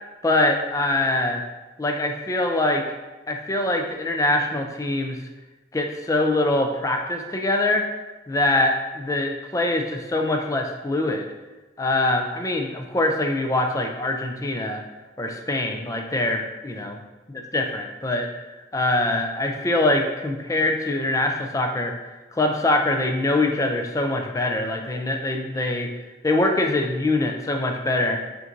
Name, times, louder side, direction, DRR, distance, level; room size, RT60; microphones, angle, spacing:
voice 1, 0.2-1.4 1.8-2.9 3.3-5.2 5.7-7.9 8.3-11.3 11.8-14.8 15.2-17.0 17.5-18.3 18.7-21.9 22.3-25.9 26.2-28.2, left 2 dB, 20° left, 3 dB, 0.4 m, -23 dB
7.1 x 2.6 x 2.6 m, 1.1 s
head